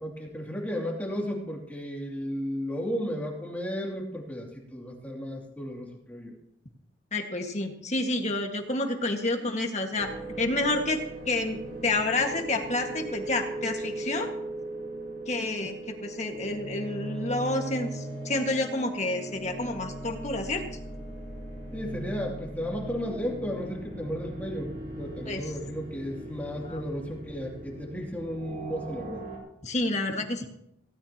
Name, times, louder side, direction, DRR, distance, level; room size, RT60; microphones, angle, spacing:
voice 1, 0.0-6.4 21.7-24.7 25.0-29.3, equal, 10° left, -1 dB, 2.7 m, -34 dB
voice 2, 7.1-10.1 10.4-14.3 15.3-20.7 25.3-25.5 26.6-26.8 29.6-30.5, left 2 dB, 35° left, 3 dB, 1.8 m, -29 dB
sound 1, 10.0-29.4, right 2 dB, 55° right, 5.3 m, -39 dB
18.0 x 17.0 x 3.0 m, 0.76 s
head